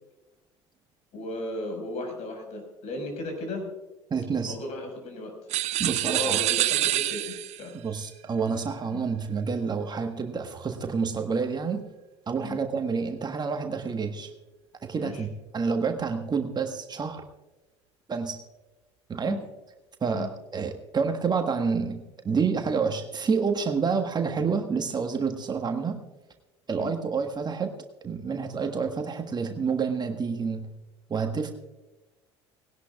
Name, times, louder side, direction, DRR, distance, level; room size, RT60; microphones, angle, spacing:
voice 1, 1.1-3.7 4.4-5.3 6.0-7.7 8.9-9.0 12.4-12.6 15.0-15.3 19.2-19.4 20.1-20.3 26.8-26.9, left 2 dB, 50° left, 3 dB, 5.5 m, -35 dB
voice 2, 4.1-4.5 5.8-6.4 7.8-11.8 12.3-14.3 14.8-17.2 18.1-18.4 19.1-19.4 20.0-26.0 26.7-27.7 28.0-30.7 31.1-31.5, right 5 dB, 30° right, 5 dB, 1.4 m, -28 dB
sound 1, 5.5-7.7, right 15 dB, 50° right, 0.6 m, -26 dB
19.5 x 18.0 x 2.4 m, 1.1 s
figure-of-eight pair, 65°, 15 cm